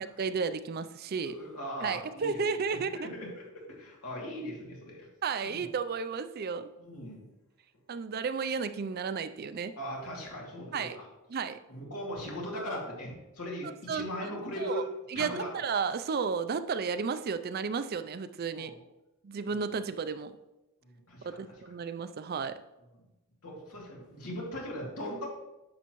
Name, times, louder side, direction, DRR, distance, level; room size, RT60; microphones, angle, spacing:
voice 1, 0.0-1.4 1.8-3.1 5.2-6.7 7.9-9.7 10.7-11.0 11.3-11.6 13.6-14.8 15.1-18.7 19.2-20.3 21.2-22.6, right 5 dB, 45° right, 12 dB, 0.4 m, -33 dB
voice 2, 1.2-5.1 5.4-5.6 6.8-7.2 9.8-11.1 11.7-14.8 15.1-15.5 18.5-18.8 19.4-19.6 20.8-21.4 23.4-25.3, equal, 90° left, -3 dB, 2.6 m, -39 dB
10.5 x 6.8 x 3.1 m, 0.99 s
head